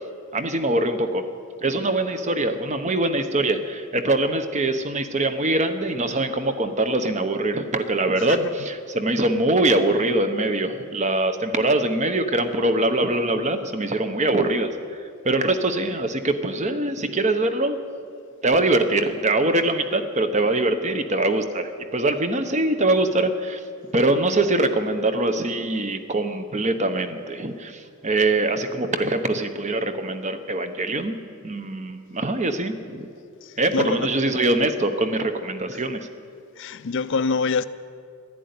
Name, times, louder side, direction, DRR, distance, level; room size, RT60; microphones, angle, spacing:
voice 1, 0.3-1.3 1.6-15.0 15.2-17.8 18.4-23.6 23.9-31.1 31.4-33.1 33.6-36.1, right 2 dB, 30° right, 0.9 m, -23 dB
voice 2, 8.2-8.5 33.4-34.1 36.6-37.7, left 4 dB, 55° left, 0.5 m, -26 dB
12.5 x 11.0 x 9.5 m
head